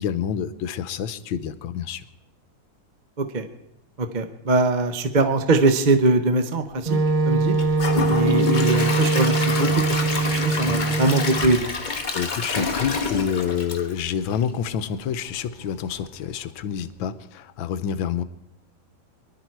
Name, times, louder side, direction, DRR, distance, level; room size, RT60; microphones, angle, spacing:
voice 1, 0.0-2.0 12.1-18.2, left 8 dB, 80° left, 14 dB, 1.5 m, -28 dB
voice 2, 4.0-7.0 7.2-7.5 8.1-11.7, right 3 dB, 35° right, 8 dB, 0.7 m, -22 dB
Wind instrument woodwind instrument, 6.9-11.5, right 3 dB, 60° right, 0.3 m, -22 dB
Gurgling / Toilet flush / Trickle dribble, 7.5-14.6 15.0-15.1 15.6-15.7, left 3 dB, 30° left, 1.1 m, -27 dB
24.0 x 12.0 x 4.6 m, 0.84 s
omnidirectional pair, 2.1 m